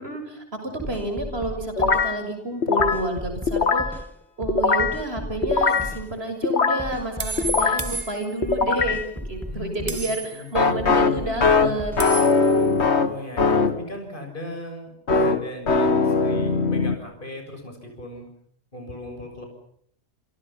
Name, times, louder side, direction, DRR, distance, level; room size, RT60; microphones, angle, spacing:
voice 1, 0.0-4.0 4.4-11.9, right 2 dB, 65° right, 5 dB, 6.9 m, -30 dB
sound 1, 0.8-2.1 2.8-4.1 4.4-6.1 6.8-8.1 8.4-10.1 10.8-12.1, equal, ahead, 1.0 m, -35 dB
sound 2, 1.8-2.2 2.6-3.1 3.5-4.0 4.5-5.0 5.4-5.9 6.4-6.9 7.4-7.9 8.4-9.1 10.5-13.8 15.1-17.0, left 4 dB, 80° left, 1.9 m, -21 dB
sound 3, 5.7-5.8 7.2-8.6 9.9-10.5 12.0-12.7, right 3 dB, 40° right, 1.2 m, -32 dB
voice 2, 9.5-10.9 12.9-18.3 18.7-19.5, left 1 dB, 50° left, 4 dB, 7.1 m, -38 dB
29.5 x 27.0 x 5.8 m, 0.66 s
omnidirectional pair, 1.1 m